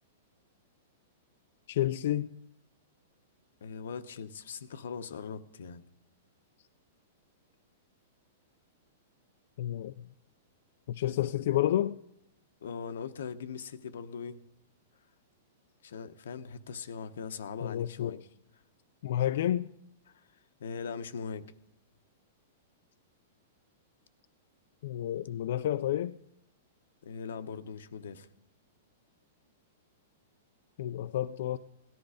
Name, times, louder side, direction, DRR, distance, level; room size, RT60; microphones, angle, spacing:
voice 1, 1.7-2.3 9.6-10.0 10.9-12.0 17.6-18.2 19.0-19.7 24.8-26.1 30.8-31.6, left 12 dB, 60° left, 0.4 m, -30 dB
voice 2, 3.6-5.8 12.6-14.4 15.8-18.2 20.1-20.2 20.6-21.4 27.0-28.3, left 6 dB, 85° left, 1.0 m, -40 dB
17.5 x 11.0 x 5.0 m
supercardioid pair, 160°, 0 cm